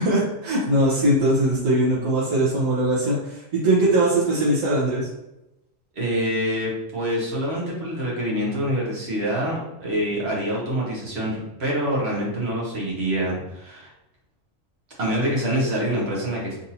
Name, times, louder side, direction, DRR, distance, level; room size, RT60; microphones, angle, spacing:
voice 1, 0.0-5.1, right 1 dB, 70° right, -7 dB, 1.3 m, -21 dB
voice 2, 5.9-13.9 15.0-16.6, equal, 55° right, -4 dB, 1.2 m, -26 dB
3.8 x 2.7 x 2.7 m, 0.93 s
omnidirectional pair, 1.4 m